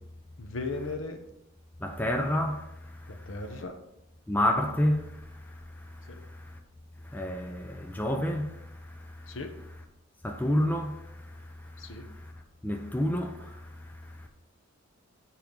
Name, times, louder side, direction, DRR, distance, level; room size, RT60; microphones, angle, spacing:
voice 1, 0.4-1.2 3.1-3.7 6.1-6.2 9.3-9.5 11.8-12.0, left 3 dB, 65° left, 0.9 m, -37 dB
voice 2, 1.8-3.4 4.3-6.6 7.0-9.4 10.2-12.3 12.6-14.3, left 1 dB, 10° left, 0.5 m, -31 dB
7.2 x 4.6 x 5.3 m
head